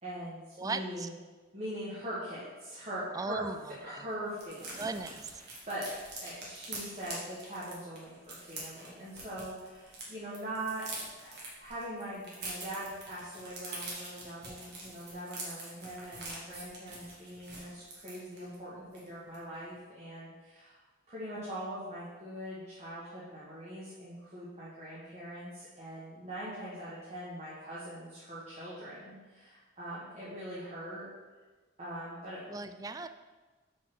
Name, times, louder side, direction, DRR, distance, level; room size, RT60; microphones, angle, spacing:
voice 1, 0.0-1.1 1.5-3.4 3.8-4.8 5.7-5.9 6.2-20.8 21.1-31.1 31.8-32.8, right 1 dB, 35° right, -10 dB, 1.7 m, -42 dB
voice 2, 0.6-1.1 3.1-4.0 4.8-5.5 32.5-33.1, right 3 dB, 20° right, 10 dB, 0.3 m, -38 dB
sound 1, 3.3-3.5 3.7-3.8 4.1-10.0 10.3-18.5 18.9-19.1 19.3-19.6, right 2 dB, 60° right, 2.0 m, -45 dB
6.0 x 4.0 x 6.2 m, 1.3 s
head